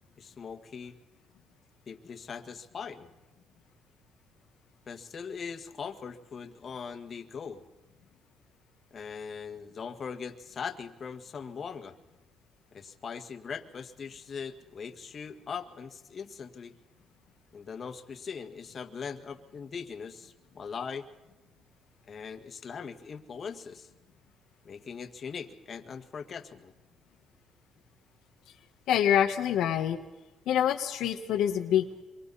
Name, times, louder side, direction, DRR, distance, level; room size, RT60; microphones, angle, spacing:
voice 1, 0.2-1.0 1.9-3.1 4.9-7.6 8.9-11.9 12.7-16.8 17.5-21.1 22.1-23.9 24.6-26.7, left 6 dB, 50° left, 6 dB, 1.9 m, -40 dB
voice 2, 28.9-30.0 30.5-32.0, left 10 dB, 85° left, 4 dB, 1.5 m, -26 dB
26.5 x 24.0 x 4.2 m, 1.0 s
cardioid pair, 90°, 0 cm